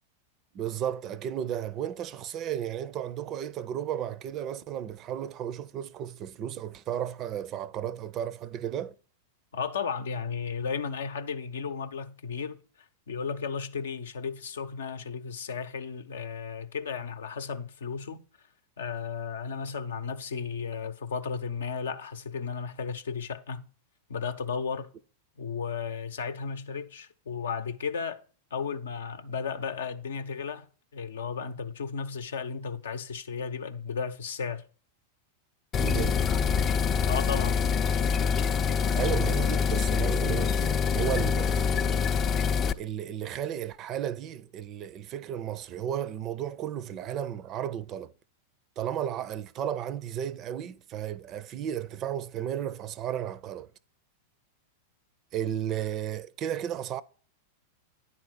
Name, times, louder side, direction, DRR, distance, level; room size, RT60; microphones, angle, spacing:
voice 1, 0.5-8.9 35.8-36.2 38.9-42.0 42.8-48.1 48.8-53.7 55.3-57.0, right 10 dB, 35° right, 0.5 m, -34 dB
voice 2, 9.5-12.6 13.1-18.2 18.8-23.7 24.1-24.9 25.4-28.2 28.5-30.7 30.9-34.6 37.1-37.6, left 6 dB, 70° left, 0.7 m, -34 dB
sound 1, 35.7-42.7, left 6 dB, 30° left, 0.4 m, -25 dB
9.7 x 4.3 x 6.2 m
figure-of-eight pair, 95°, 0 cm